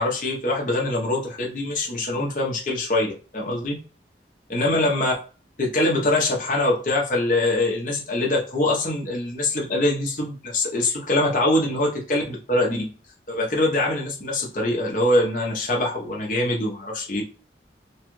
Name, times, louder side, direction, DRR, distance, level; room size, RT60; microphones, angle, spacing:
voice 1, 0.0-3.8 4.5-5.1 5.6-12.9 13.3-17.2, left 2 dB, 45° left, -2 dB, 0.9 m, -23 dB
3.1 x 2.3 x 3.1 m, 0.36 s
head